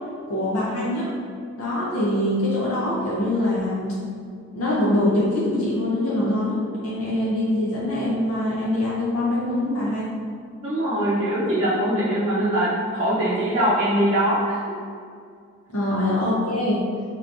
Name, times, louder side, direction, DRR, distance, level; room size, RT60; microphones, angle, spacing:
voice 1, 0.3-1.1 1.6-4.0 4.5-10.2 15.7-16.9, left 1 dB, 85° left, -8 dB, 0.8 m, -23 dB
voice 2, 10.6-14.5, right 1 dB, 25° right, -13 dB, 0.7 m, -22 dB
4.7 x 3.0 x 2.6 m, 2.2 s
head